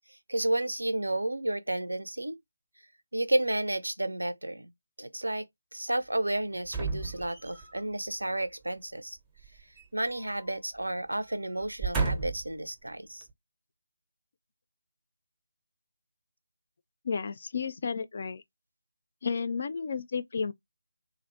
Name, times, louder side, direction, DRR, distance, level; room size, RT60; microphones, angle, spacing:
voice 1, 0.3-2.4 3.1-4.7 5.0-5.4 5.7-9.2 9.9-13.3, right 1 dB, 75° right, 0.4 m, -31 dB
sound 1, 6.6-7.8 9.4-10.5 10.8-11.0 11.6-12.5 13.2-13.3, right 4 dB, 10° right, 0.5 m, -33 dB
voice 2, 17.0-18.4 19.2-20.5, left 5 dB, 40° left, 0.3 m, -32 dB
2.5 x 2.0 x 2.5 m
figure-of-eight pair, 155°, 0 cm